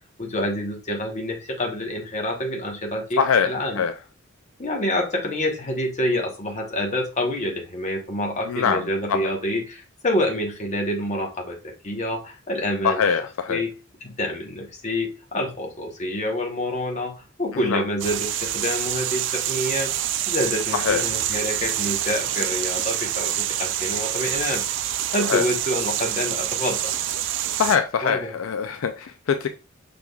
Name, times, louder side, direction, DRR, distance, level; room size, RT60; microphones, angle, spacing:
voice 1, 0.2-3.8 4.6-11.6 11.8-13.0 13.5-13.7 14.0-19.9 20.3-24.7 25.1-26.9 28.0-28.3, left 1 dB, 35° left, 1 dB, 1.1 m, -27 dB
voice 2, 3.2-3.5 3.8-3.9 8.5-9.2 12.8-13.6 17.5-17.8 20.7-21.0 25.3-25.4 27.6-29.5, left 6 dB, 80° left, 8 dB, 0.4 m, -23 dB
sound 1, 18.0-27.8, right 12 dB, 60° right, 0.4 m, -26 dB
6.0 x 3.5 x 2.3 m, 0.30 s
head